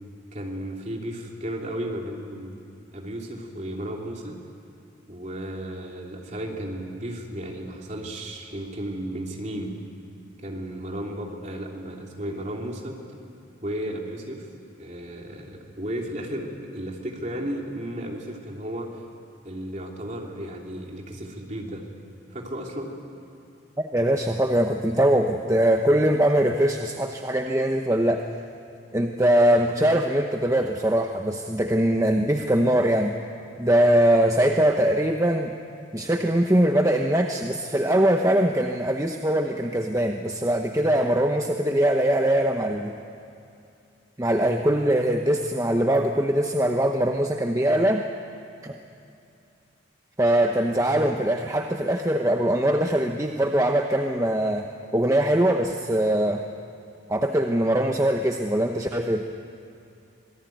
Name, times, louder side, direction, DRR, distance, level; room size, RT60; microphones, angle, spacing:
voice 1, 0.3-2.5 2.9-4.4 5.1-9.8 10.4-13.0 13.6-14.5 14.8-19.0 19.4-21.9 22.3-22.9, right 1 dB, 35° right, 0 dB, 3.2 m, -34 dB
voice 2, 23.9-28.2 28.9-33.1 33.6-35.5 35.9-42.9 44.2-48.1 48.6-48.7 50.2-54.7 54.9-56.4 57.1-59.2, right 1 dB, 15° right, 3 dB, 0.8 m, -22 dB
26.0 x 19.0 x 9.3 m, 2.6 s
head